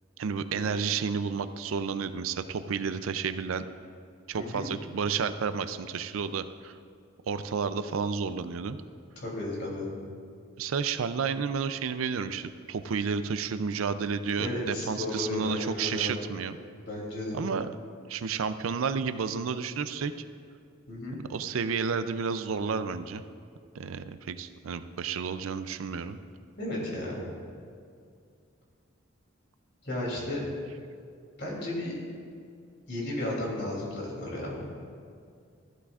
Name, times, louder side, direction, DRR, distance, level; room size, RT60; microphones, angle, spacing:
voice 1, 0.2-3.7 4.3-6.7 7.3-8.8 10.6-16.6 17.3-17.7 18.1-20.1 21.3-23.2 23.7-26.2, right 6 dB, 80° right, 11 dB, 0.4 m, -31 dB
voice 2, 4.3-4.7 9.2-9.9 14.4-16.1 16.9-17.5 20.9-21.2 26.6-27.2 29.8-30.4 31.4-31.9 32.9-34.7, left 1 dB, 55° left, -4 dB, 2.9 m, -34 dB
14.5 x 11.5 x 2.4 m, 2.3 s
head